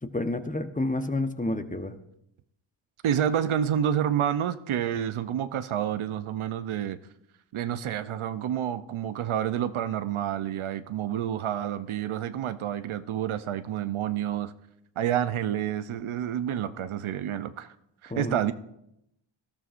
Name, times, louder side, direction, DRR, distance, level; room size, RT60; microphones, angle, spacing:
voice 1, 0.0-2.0 18.1-18.5, left 2 dB, 15° left, 8 dB, 1.0 m, -30 dB
voice 2, 3.0-7.0 7.5-14.5 15.0-17.7 18.0-18.5, right 10 dB, 75° right, 12 dB, 0.7 m, -29 dB
19.0 x 12.5 x 2.5 m, 0.80 s
cardioid pair, 60°, 50 cm